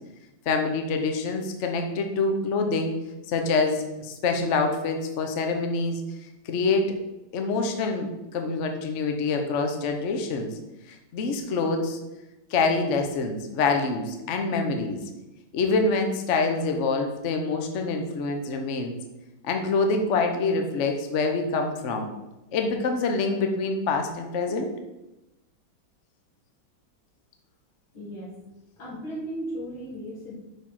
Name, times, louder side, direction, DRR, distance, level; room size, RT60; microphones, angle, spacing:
voice 1, 0.5-3.0 3.3-6.0 6.4-6.9 7.3-8.1 8.3-10.6 10.9-12.0 12.5-15.0 15.5-19.0 19.4-22.1 22.5-24.7, left 3 dB, 50° left, 4 dB, 0.9 m, -26 dB
voice 2, 27.9-30.3, right 1 dB, 85° left, -4 dB, 3.1 m, -36 dB
6.0 x 4.9 x 5.6 m, 0.98 s
omnidirectional pair, 2.2 m